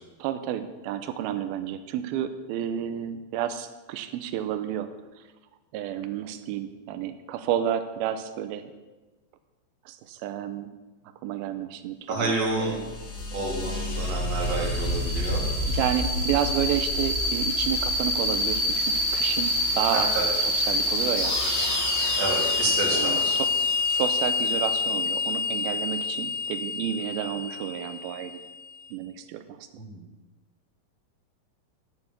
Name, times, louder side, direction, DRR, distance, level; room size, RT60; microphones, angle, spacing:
voice 1, 0.2-4.9 5.7-8.7 9.9-10.7 11.2-12.9 15.7-20.2 20.5-21.4 22.9-23.5 23.9-28.4 28.9-29.7, right 10 dB, 85° right, 10 dB, 2.3 m, -31 dB
voice 2, 12.1-12.8 13.3-15.4 19.9-20.3 22.2-23.4 29.7-30.0, right 3 dB, 45° right, -1 dB, 2.8 m, -29 dB
sound 1, 12.4-28.7, left 2 dB, 75° left, 0.6 m, -27 dB
9.1 x 6.9 x 8.1 m, 1.2 s
omnidirectional pair, 4.8 m